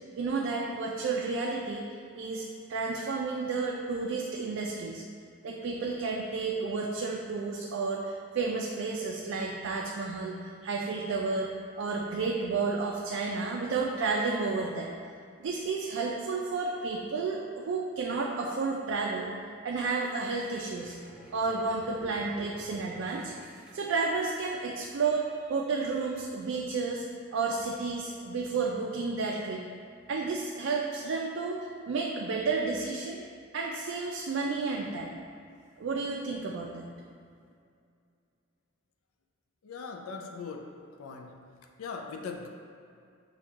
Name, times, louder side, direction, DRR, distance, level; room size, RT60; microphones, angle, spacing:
voice 1, 0.2-5.0 5.4-11.5 11.8-14.9 15.4-19.3 19.6-21.0 21.3-23.3 23.7-27.0 27.3-29.6 30.1-33.2 33.5-35.1 35.8-36.9, right 4 dB, 65° right, -1 dB, 0.3 m, -31 dB
sound 1, 19.8-24.8, right 2 dB, 5° right, 0.4 m, -52 dB
voice 2, 39.6-41.4 41.8-42.5, left 4 dB, 90° left, 3 dB, 0.4 m, -40 dB
6.0 x 2.3 x 3.5 m, 2.3 s
head